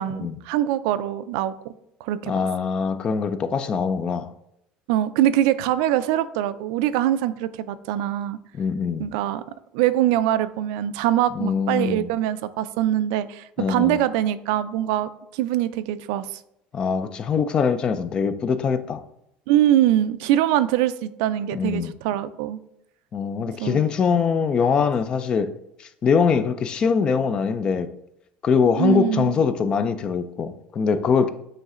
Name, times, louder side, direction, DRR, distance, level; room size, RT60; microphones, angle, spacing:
voice 1, 0.0-1.7 2.0-2.3 4.9-8.4 9.0-9.4 9.7-16.4 19.5-22.6 23.6-23.8 28.8-29.4, right 12 dB, 85° right, 0.4 m, -23 dB
voice 2, 2.3-4.3 8.6-9.1 11.4-12.1 13.6-14.0 16.7-19.0 21.5-21.9 23.1-25.5 25.8-27.9 28.4-31.3, left 6 dB, 25° left, 0.4 m, -23 dB
9.1 x 3.2 x 3.7 m
cardioid pair, 170°, 3 cm